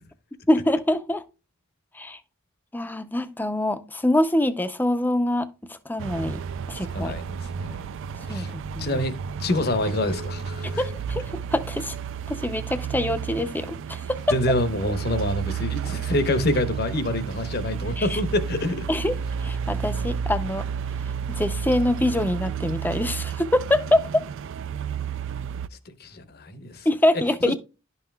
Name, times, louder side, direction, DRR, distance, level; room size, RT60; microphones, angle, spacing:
voice 1, 0.5-1.2 1.9-2.2 2.7-6.4 6.7-7.1 8.3-8.5 8.7-9.0 10.8-11.2 11.5-12.0 12.3-14.2 18.0-18.2 18.9-20.6 21.3-24.2 26.9-27.5, left 1 dB, 10° left, 0.5 m, -24 dB
sound 1, 6.0-25.7, right 7 dB, 60° right, 0.3 m, -31 dB
voice 2, 6.9-7.9 8.3-8.5 8.8-10.8 14.3-18.8 25.9-26.9 27.5-27.6, left 1 dB, 50° left, 0.9 m, -27 dB
11.5 x 5.5 x 2.3 m
head